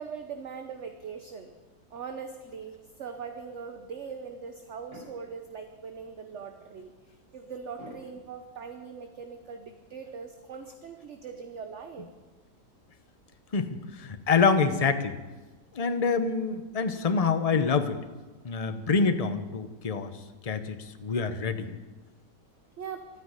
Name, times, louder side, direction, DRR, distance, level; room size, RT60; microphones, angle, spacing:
voice 1, 0.0-1.5 1.9-12.1 22.8-23.1, right 6 dB, 50° right, 6 dB, 1.1 m, -41 dB
sound 1, 4.9-5.6 6.1-6.4 7.7-8.7 9.1-9.2 11.5-11.9 12.1-12.8, equal, 90° right, 7.0 m, -52 dB
voice 2, 13.5-15.2 15.7-18.0 18.4-20.1 20.4-21.8, left 5 dB, 35° left, 9 dB, 0.6 m, -26 dB
13.0 x 9.7 x 9.7 m, 1.2 s
omnidirectional pair, 1.8 m